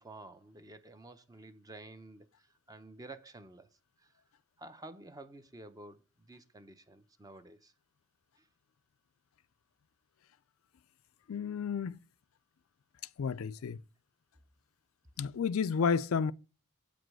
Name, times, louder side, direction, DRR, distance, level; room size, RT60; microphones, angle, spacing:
voice 1, 0.0-3.7 4.0-4.2 4.6-7.7 8.4-8.5, right 2 dB, 15° right, 0.6 m, -51 dB
voice 2, 11.3-12.0 13.2-13.8 15.2-16.3, left 6 dB, 65° left, 0.4 m, -31 dB
8.3 x 5.0 x 6.2 m
head